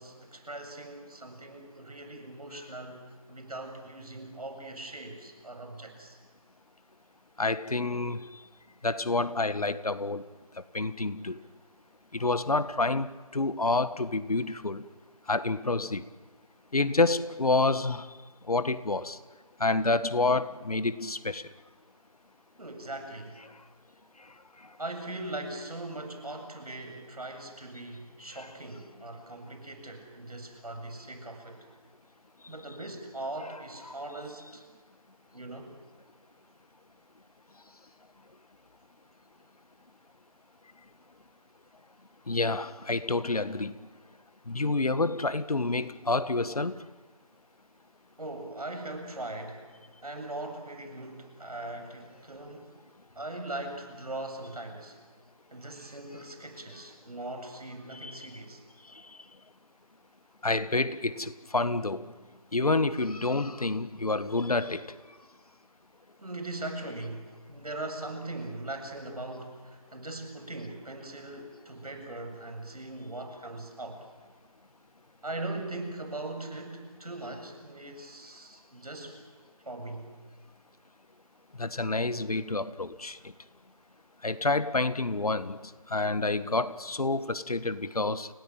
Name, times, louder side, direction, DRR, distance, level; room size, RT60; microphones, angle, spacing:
voice 1, 0.0-6.2 22.6-23.4 24.8-31.7 32.5-34.6 35.3-35.8 48.2-52.7 53.1-55.0 55.5-58.6 66.2-74.0 75.2-79.2 79.6-80.1, right 2 dB, 90° right, 7.5 m, -40 dB
voice 2, 7.4-8.4 8.8-10.2 10.7-11.4 12.1-14.8 15.3-16.0 16.7-18.1 18.5-19.2 19.6-21.4 42.3-43.8 44.5-46.8 57.9-58.1 60.4-62.1 62.5-64.9 81.6-83.2 84.2-85.6 85.9-88.3, left 3 dB, 85° left, 1.7 m, -28 dB
30.0 x 18.0 x 9.1 m
figure-of-eight pair, 175°, 19 cm